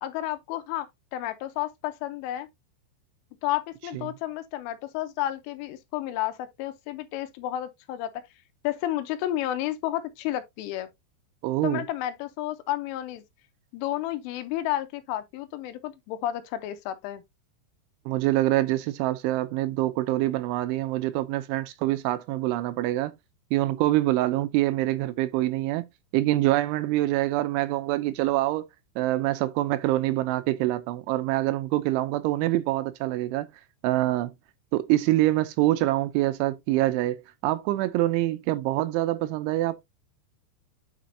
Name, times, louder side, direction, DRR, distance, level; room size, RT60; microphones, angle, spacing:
voice 1, 0.0-2.5 3.4-8.2 8.6-10.9 11.6-13.2 13.7-17.2, left 13 dB, 85° left, 3.3 m, -31 dB
voice 2, 11.4-11.8 18.1-23.1 23.5-25.8 26.1-28.6 29.0-33.5 33.8-34.3 34.7-39.8, right 16 dB, 85° right, 2.9 m, -25 dB
9.1 x 5.1 x 2.7 m
omnidirectional pair, 5.6 m